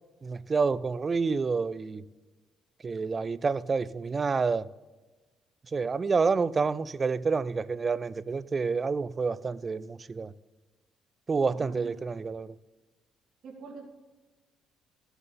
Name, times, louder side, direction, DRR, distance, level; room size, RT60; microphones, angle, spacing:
voice 1, 0.2-2.0 2.8-4.7 5.7-10.3 11.3-12.5, right 4 dB, 30° right, 0.4 m, -28 dB
voice 2, 11.5-11.9 13.4-13.9, right 5 dB, 60° right, 2.2 m, -44 dB
14.5 x 8.0 x 3.8 m
cardioid pair, 110°, 0 cm